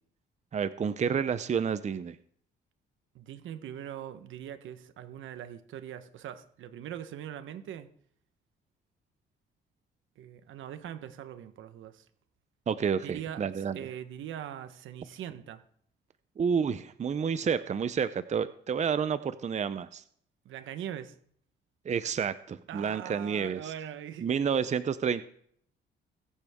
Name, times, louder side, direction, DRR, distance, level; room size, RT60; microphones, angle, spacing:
voice 1, 0.5-2.2 12.7-13.8 16.4-20.0 21.9-23.7 24.2-25.2, right 7 dB, 35° right, 0.6 m, -30 dB
voice 2, 3.1-7.9 10.2-12.1 13.0-15.6 20.4-21.1 22.7-24.7, right 10 dB, 80° right, 1.1 m, -42 dB
21.5 x 8.3 x 3.6 m
cardioid pair, 90°, 20 cm